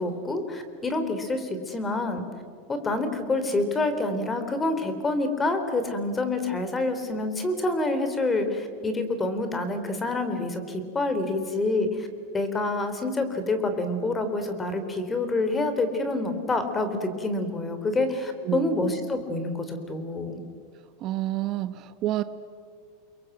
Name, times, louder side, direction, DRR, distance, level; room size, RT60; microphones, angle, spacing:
voice 1, 0.0-2.2 2.7-12.1 12.3-20.4, left 2 dB, 15° left, 8 dB, 3.5 m, -27 dB
voice 2, 18.4-18.9 21.0-22.2, right 14 dB, 45° right, 12 dB, 1.0 m, -29 dB
29.5 x 22.5 x 8.0 m, 2.2 s
supercardioid pair, 125°, 0 cm